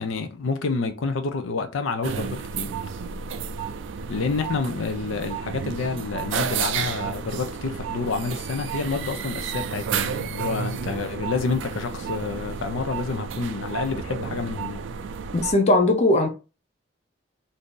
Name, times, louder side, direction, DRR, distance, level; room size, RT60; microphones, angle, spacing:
voice 1, 0.0-2.7 4.1-14.9, left 4 dB, 90° left, 0.5 m, -28 dB
sound 1, 2.0-15.5, right 7 dB, 70° right, 0.3 m, -31 dB
voice 2, 15.3-16.3, left 2 dB, 35° left, 0.6 m, -19 dB
2.7 x 2.5 x 3.6 m
head